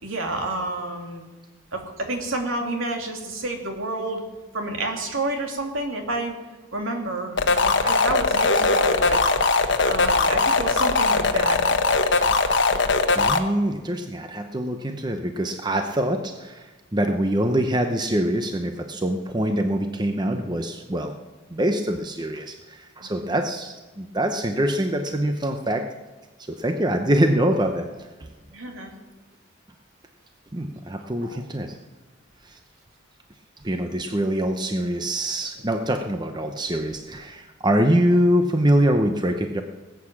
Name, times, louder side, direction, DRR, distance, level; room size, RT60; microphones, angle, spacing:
voice 1, 0.0-1.2 1.7-4.2 4.5-6.4 6.7-9.2 9.9-11.7 23.0-23.3 28.5-28.9 31.2-31.4, right 2 dB, 70° right, 3 dB, 2.5 m, -29 dB
sound 1, 7.4-13.4, left 3 dB, 55° left, 1.1 m, -20 dB
voice 2, 13.1-21.1 21.5-25.8 26.5-27.9 30.5-31.8 32.4-32.6 33.6-39.6, right 1 dB, 20° right, 5 dB, 0.7 m, -24 dB
19.5 x 8.4 x 7.3 m, 1.2 s
head